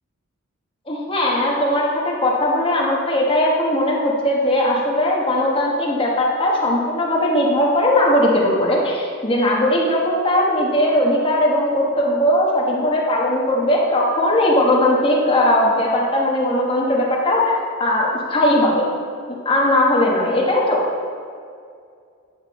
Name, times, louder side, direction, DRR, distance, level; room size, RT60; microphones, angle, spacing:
voice 1, 0.9-18.9 19.3-20.9, left 1 dB, 25° left, -3 dB, 1.3 m, -19 dB
9.5 x 6.0 x 4.3 m, 2.2 s
head